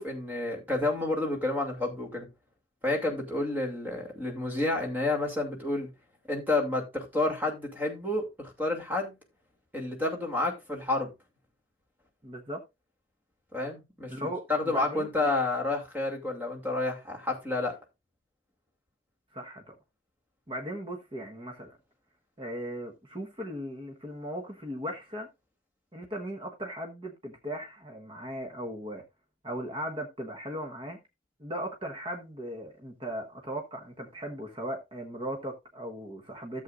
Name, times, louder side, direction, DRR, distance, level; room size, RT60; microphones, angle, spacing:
voice 1, 0.0-2.3 2.8-5.9 6.3-9.1 9.7-11.1 13.5-17.8, left 2 dB, 10° right, 2.5 m, -30 dB
voice 2, 12.2-12.6 14.1-15.3 19.3-19.7 20.5-21.8 22.4-25.3 25.9-29.0 29.4-31.0 31.4-36.6, equal, 30° right, 1.2 m, -38 dB
14.0 x 7.5 x 2.5 m
head